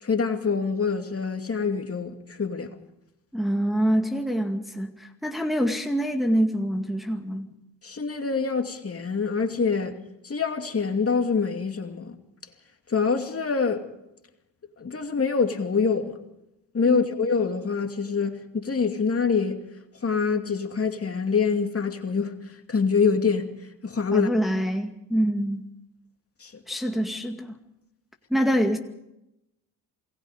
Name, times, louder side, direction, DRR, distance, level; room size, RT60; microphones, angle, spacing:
voice 1, 0.0-2.7 7.8-9.9 10.2-12.2 12.9-13.9 14.8-16.2 16.7-19.6 20.0-22.3 22.7-23.5 23.8-24.3 26.4-26.5, left 5 dB, 30° left, 2.5 m, -25 dB
voice 2, 3.3-7.5 16.9-17.0 24.1-25.7 26.7-27.6 28.3-28.8, equal, ahead, 2.2 m, -25 dB
27.5 x 19.5 x 5.1 m
supercardioid pair, 70°, 44 cm